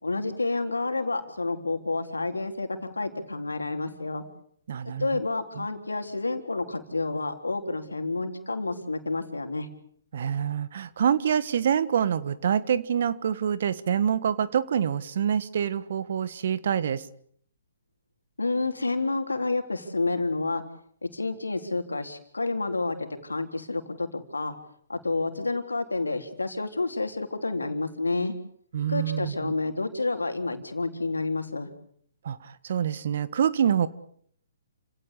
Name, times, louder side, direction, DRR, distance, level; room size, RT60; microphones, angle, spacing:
voice 1, 0.0-4.2 5.0-9.7 18.4-20.6 21.0-24.5 24.9-28.3 28.9-31.7, left 3 dB, 90° left, 6 dB, 3.6 m, -29 dB
voice 2, 4.7-5.2 5.6-5.7 10.1-17.1 28.7-29.5 32.2-33.9, right 8 dB, 55° right, 16 dB, 1.6 m, -26 dB
29.0 x 17.0 x 8.4 m, 0.63 s
figure-of-eight pair, 130°, 0 cm